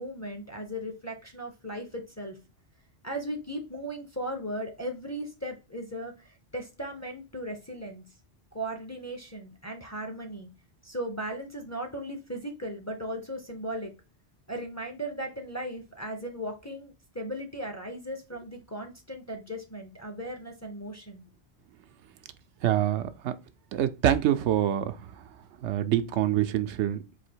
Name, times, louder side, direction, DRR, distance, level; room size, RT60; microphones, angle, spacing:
voice 1, 0.0-2.4 3.0-8.0 8.5-10.5 10.8-13.9 14.5-21.2, right 1 dB, 20° left, 0.6 m, -37 dB
voice 2, 22.6-23.4 23.7-25.0 25.6-27.3, right 11 dB, 90° right, 0.9 m, -26 dB
4.2 x 2.7 x 4.4 m
omnidirectional pair, 1.1 m